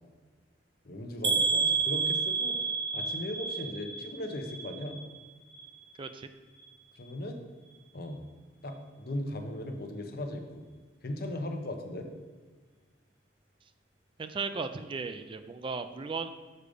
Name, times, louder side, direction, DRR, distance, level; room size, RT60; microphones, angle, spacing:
voice 1, 0.8-2.6 2.9-5.0 7.0-7.4 7.9-8.2 8.6-10.6 11.0-12.1, left 1 dB, 55° left, 5 dB, 0.9 m, -37 dB
sound 1, 1.2-5.2 5.5-6.1 6.6-6.7 7.1-7.2, right 5 dB, 70° right, 1.0 m, -30 dB
voice 2, 6.0-6.3 14.2-16.3, right 4 dB, 30° right, 10 dB, 0.3 m, -36 dB
6.6 x 5.1 x 5.1 m, 1.5 s
head